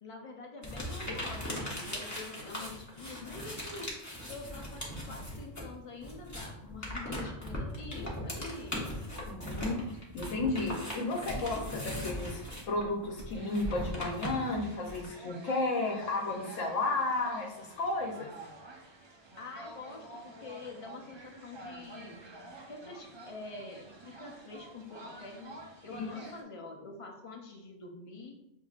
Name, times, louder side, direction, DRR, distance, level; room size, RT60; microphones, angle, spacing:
voice 1, 0.0-3.9 4.2-8.8 19.4-22.2 22.7-25.6 25.8-28.4, left 3 dB, 50° left, 1 dB, 0.4 m, -46 dB
sound 1, 0.6-5.7 6.0-15.1, left 1 dB, 15° left, 0.8 m, -39 dB
voice 2, 9.3-9.8 10.1-18.3 26.0-26.1, left 2 dB, 80° left, 0 dB, 1.1 m, -33 dB
sound 2, 13.3-26.4, right 2 dB, 40° right, 0.4 m, -49 dB
6.7 x 2.7 x 2.4 m, 0.85 s
omnidirectional pair, 1.3 m